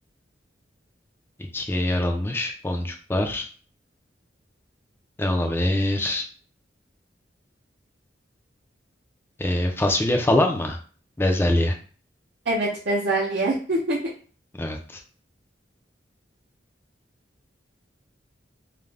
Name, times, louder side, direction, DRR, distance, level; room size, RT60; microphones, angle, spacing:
voice 1, 1.5-3.5 5.2-6.3 9.4-10.8 11.2-11.8 14.6-15.0, left 1 dB, 15° left, 3 dB, 0.4 m, -23 dB
voice 2, 12.5-14.1, right 2 dB, 60° right, -8 dB, 0.6 m, -24 dB
2.4 x 2.1 x 3.2 m, 0.41 s
head